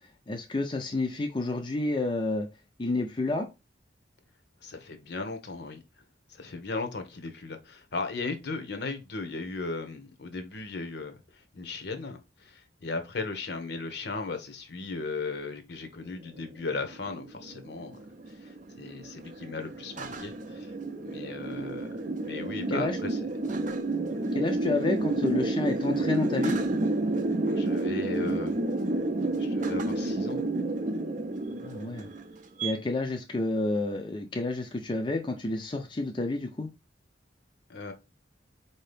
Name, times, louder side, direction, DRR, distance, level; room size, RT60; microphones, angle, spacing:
voice 1, 0.3-2.5 2.8-3.5 22.7-23.0 24.3-26.6 31.6-32.1 32.6-36.7, left 2 dB, 25° left, 0.4 m, -30 dB
voice 2, 4.6-5.8 6.3-18.0 18.3-20.7 21.0-22.0 22.2-23.2 27.5-28.6 29.4-30.4 37.7-37.9, left 3 dB, 60° left, 0.8 m, -37 dB
sound 1, 16.4-32.7, right 2 dB, 40° right, 0.5 m, -30 dB
4.2 x 2.7 x 3.3 m
head